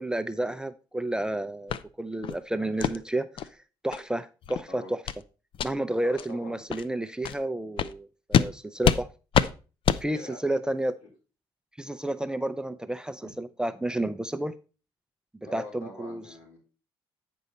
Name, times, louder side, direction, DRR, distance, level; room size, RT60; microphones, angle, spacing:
voice 1, 0.0-3.3 3.8-5.0 5.6-9.1 10.0-10.9 11.8-14.6 15.5-16.2, right 1 dB, 10° right, 0.5 m, -31 dB
sound 1, 1.7-1.8 2.2-2.4 2.8-3.0 3.4-3.5 3.9-4.0 4.4-4.6 5.1-5.2 5.5-5.7 6.2-6.3 6.7-6.8 7.2-7.4 7.8-7.9 8.3-8.5 8.8-9.0 9.3-9.5 9.8-10.0, left 9 dB, 60° left, 0.5 m, -25 dB
voice 2, 6.0-6.6 10.0-11.1 13.2-13.3 15.5-16.6, left 2 dB, 75° left, 5.0 m, -45 dB
9.2 x 5.4 x 4.2 m
cardioid pair, 80°, 10 cm